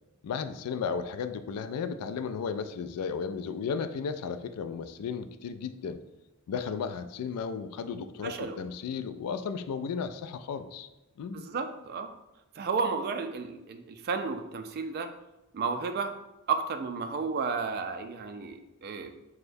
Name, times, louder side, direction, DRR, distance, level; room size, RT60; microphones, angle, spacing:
voice 1, 0.2-6.0 6.5-10.9 11.2-11.4, left 6 dB, 90° left, 10 dB, 0.3 m, -34 dB
voice 2, 8.2-8.6 11.3-12.1 12.6-15.1 15.5-16.1 16.5-19.1, right 5 dB, 45° right, 7 dB, 0.3 m, -32 dB
6.2 x 2.1 x 2.6 m, 0.97 s
head